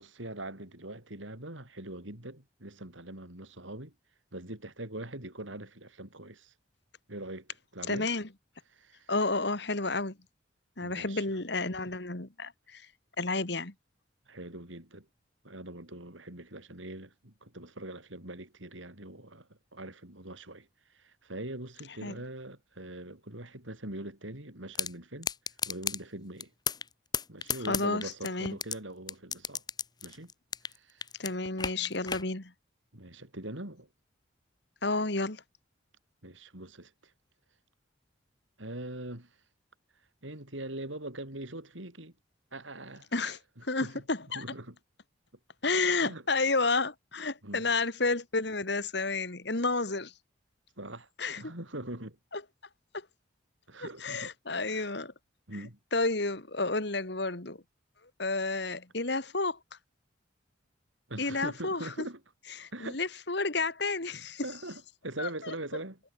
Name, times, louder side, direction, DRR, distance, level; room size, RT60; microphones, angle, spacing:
voice 1, 0.0-3.9 4.3-6.5 7.1-8.1 8.7-9.1 10.8-11.4 14.3-15.1 15.4-20.7 20.9-25.3 25.6-26.5 27.3-29.6 30.0-30.3 30.7-31.1 32.9-33.9 36.2-37.1 38.6-39.3 40.2-42.1 42.5-43.4 43.8-44.0 44.3-44.8 46.0-46.2 47.4-47.7 50.8-51.1 51.4-52.2 53.7-54.3 54.7-54.9 55.5-55.8 61.1-62.2 62.7-63.0 64.4-66.0, right 1 dB, 80° right, 5.7 m, -42 dB
voice 2, 7.9-8.3 9.1-10.2 10.8-12.8 13.2-13.7 22.0-22.2 27.7-28.6 31.2-32.5 34.8-35.4 43.1-43.4 43.7-44.4 45.6-50.1 51.2-51.4 52.3-52.4 53.8-55.1 55.9-57.6 58.2-59.6 61.2-62.1 62.6-64.4 65.2-65.5, left 3 dB, 60° left, 2.1 m, -31 dB
sound 1, 24.7-24.9 25.2-26.0 26.4-26.9 27.1-28.7 29.1-30.8 31.0-32.2, left 7 dB, 20° left, 0.8 m, -32 dB
head